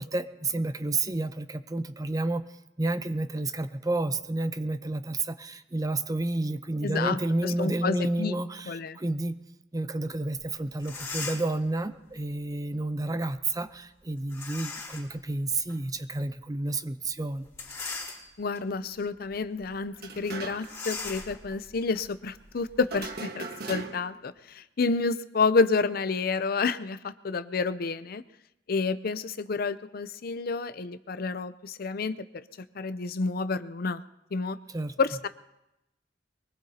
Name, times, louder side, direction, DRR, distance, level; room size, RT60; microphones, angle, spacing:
voice 1, 0.0-2.5 2.8-9.4 9.7-17.5 34.7-34.9, right 2 dB, 20° right, 10 dB, 0.7 m, -30 dB
voice 2, 6.8-8.3 8.7-9.0 18.4-28.2 28.7-32.2 32.8-34.0 34.3-34.6 35.0-35.3, left 4 dB, 55° left, 13 dB, 0.6 m, -29 dB
sound 1, 10.4-10.5 10.8-11.6 14.3-15.2 15.7-15.8 17.5-18.6 19.2-19.4 19.6-19.8 20.6-23.1, left 4 dB, 20° left, 4.1 m, -39 dB
sound 2, 19.9-20.9 21.1-21.2 22.9-24.2, right 3 dB, 60° right, 1.5 m, -39 dB
23.5 x 19.5 x 2.9 m, 0.90 s
head